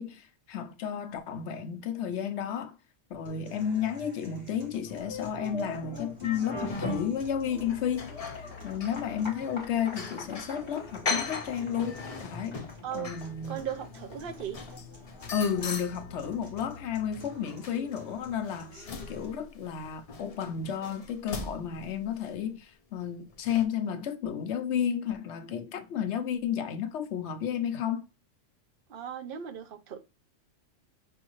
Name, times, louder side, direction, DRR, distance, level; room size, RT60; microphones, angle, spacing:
voice 1, 0.0-2.8 3.1-8.1 8.4-12.6 12.9-13.6 15.3-28.0, left 8 dB, 75° left, 0.9 m, -32 dB
sound 1, 3.3-19.3, left 4 dB, 40° right, 1.4 m, -49 dB
sound 2, 4.8-17.6, left 2 dB, 25° left, 1.3 m, -43 dB
sound 3, 6.6-7.3 7.6-10.6 11.1-16.7 17.1-22.3 23.3-23.6, left 4 dB, 40° left, 0.6 m, -40 dB
voice 2, 13.5-14.6 28.9-30.0, right 9 dB, 55° right, 0.8 m, -37 dB
5.5 x 2.7 x 3.0 m
omnidirectional pair, 1.2 m